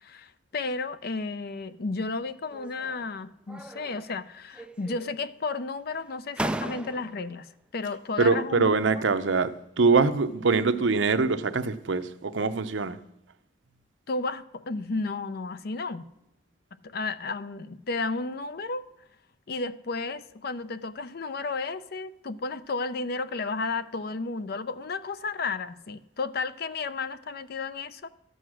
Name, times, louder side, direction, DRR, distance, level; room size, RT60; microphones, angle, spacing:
voice 1, 0.0-7.5 7.7-8.7 14.1-16.1 16.8-18.8 19.5-28.1, left 3 dB, 55° left, 0.6 m, -33 dB
sound 1, 2.5-3.1 3.5-4.2 4.5-5.3 5.9-6.0 6.4-7.3, right 1 dB, 5° right, 0.4 m, -36 dB
voice 2, 8.2-13.0, right 4 dB, 75° right, 0.7 m, -24 dB
12.5 x 7.8 x 6.3 m
head